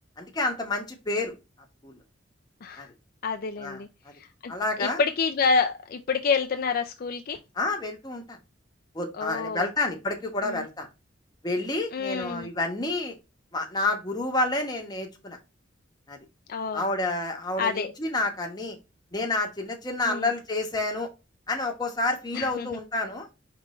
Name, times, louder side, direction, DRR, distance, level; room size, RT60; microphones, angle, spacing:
voice 1, 0.2-1.3 1.8-2.0 2.8-2.9 3.6-3.8 4.5-5.0 7.6-8.4 8.9-10.9 11.4-13.2 13.5-15.4 16.1-16.2 16.7-18.8 19.1-21.1 21.5-23.3, left 2 dB, 20° left, 1.1 m, -29 dB
voice 2, 3.2-3.9 4.2-4.5 4.8-7.4 9.2-9.7 10.4-10.6 11.9-12.5 16.5-16.9 17.6-17.9 20.0-20.3 22.3-22.7, left 5 dB, 50° left, 0.4 m, -28 dB
5.0 x 3.4 x 3.1 m
head